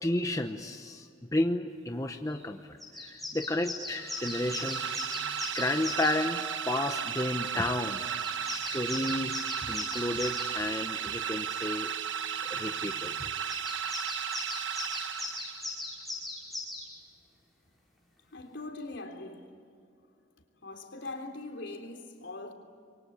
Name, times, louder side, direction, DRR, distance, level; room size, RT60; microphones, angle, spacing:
voice 1, 0.0-2.6 3.0-4.9 5.5-8.0 8.5-9.4 9.7-11.9 12.5-13.1, left 1 dB, 15° left, 0.9 m, -32 dB
sound 1, 2.3-2.4 2.8-6.2 8.0-10.5 13.5-16.9, left 2 dB, ahead, 5.8 m, -39 dB
sound 2, 4.0-15.8, right 8 dB, 80° right, 1.2 m, -35 dB
voice 2, 18.3-19.5 20.6-22.5, left 2 dB, 70° left, 3.5 m, -41 dB
28.0 x 23.5 x 8.7 m
head